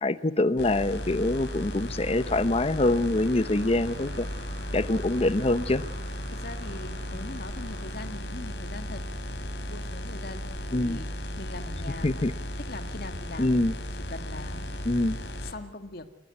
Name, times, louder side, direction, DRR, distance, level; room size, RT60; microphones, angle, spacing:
voice 1, 0.0-4.3 4.7-5.8 10.7-11.0 12.0-12.3 13.4-13.7 14.9-15.2, left 2 dB, 35° left, 14 dB, 0.7 m, -25 dB
sound 1, 0.6-15.5, equal, 85° left, 3.4 m, -35 dB
sound 2, 0.9-8.1, right 1 dB, 65° right, 5.5 m, -47 dB
voice 2, 4.9-5.5 6.3-9.0 9.6-13.6 14.0-15.0 15.4-16.1, left 2 dB, 60° left, 7 dB, 2.0 m, -42 dB
29.0 x 13.0 x 9.6 m, 0.96 s
head